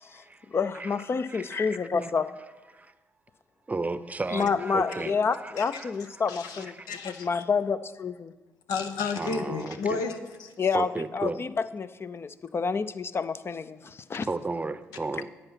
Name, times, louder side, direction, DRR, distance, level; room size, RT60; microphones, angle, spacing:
voice 1, 0.5-2.3 4.3-6.7 7.0-8.3 10.6-10.9 11.1-14.3, left 5 dB, 40° left, 14 dB, 0.6 m, -28 dB
voice 2, 1.3-2.2 3.7-5.9 6.6-6.7 9.2-10.0 10.7-11.4 14.3-15.3, right 3 dB, 25° right, 13 dB, 0.7 m, -33 dB
voice 3, 6.3-7.3 8.7-10.5, left 5 dB, 80° left, 7 dB, 0.9 m, -32 dB
10.5 x 8.1 x 5.9 m, 1.3 s
hypercardioid pair, 50°, 6 cm